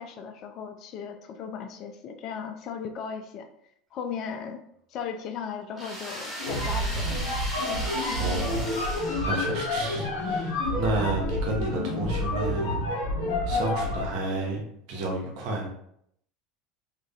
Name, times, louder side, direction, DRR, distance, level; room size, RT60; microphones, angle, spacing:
voice 1, 0.0-3.5 3.9-4.6 4.9-7.2, left 6 dB, 50° left, 6 dB, 0.3 m, -36 dB
sound 1, 5.8-9.9, equal, 10° right, 1.1 m, -37 dB
sound 2, 6.4-14.2, left 1 dB, 85° left, 0.7 m, -29 dB
voice 2, 8.2-8.7 9.2-12.9 13.5-15.7, right 2 dB, 65° right, -1 dB, 0.8 m, -31 dB
2.3 x 2.1 x 2.7 m, 0.71 s
hypercardioid pair, 80°, 0 cm